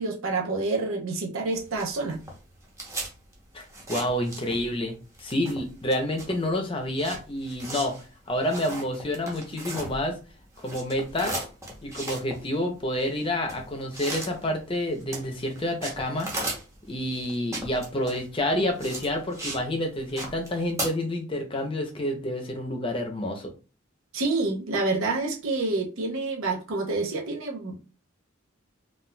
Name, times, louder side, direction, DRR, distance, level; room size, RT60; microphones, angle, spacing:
voice 1, 0.0-2.2 24.1-27.8, right 3 dB, 80° right, 0 dB, 0.7 m, -28 dB
sound 1, 1.5-4.8 5.1-10.3 10.5-19.7 19.9-20.9, right 1 dB, 15° right, 0.8 m, -37 dB
voice 2, 3.5-8.0 8.3-10.2 10.6-11.4 11.8-16.3 16.9-23.5, left 1 dB, 25° left, 3 dB, 0.6 m, -29 dB
3.9 x 2.4 x 2.2 m, 0.34 s
head